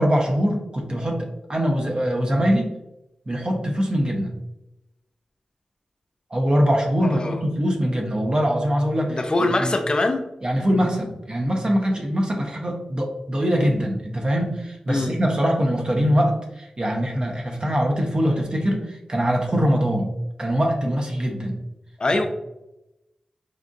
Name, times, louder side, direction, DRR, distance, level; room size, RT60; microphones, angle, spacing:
voice 1, 0.0-2.7 3.3-4.3 6.3-9.7 10.4-20.1 20.4-21.6, equal, 40° right, 1 dB, 0.9 m, -23 dB
voice 2, 9.1-10.2 14.9-15.1 22.0-22.2, left 2 dB, 40° left, 5 dB, 0.4 m, -22 dB
5.0 x 2.5 x 2.5 m, 0.92 s
cardioid pair, 50°, 2 cm